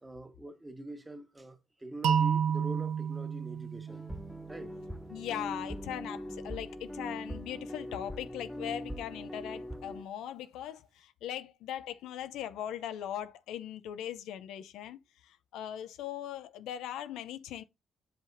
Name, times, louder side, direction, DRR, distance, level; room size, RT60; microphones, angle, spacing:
voice 1, 0.0-4.1 4.5-4.7, right 1 dB, 15° right, 1.4 m, -44 dB
sound 1, 2.0-4.9, right 7 dB, 80° right, 0.7 m, -31 dB
sound 2, 3.9-10.0, equal, 5° left, 0.6 m, -41 dB
voice 2, 5.1-17.6, left 11 dB, 90° left, 0.6 m, -40 dB
7.5 x 5.8 x 2.6 m
cardioid pair, 90°, 0 cm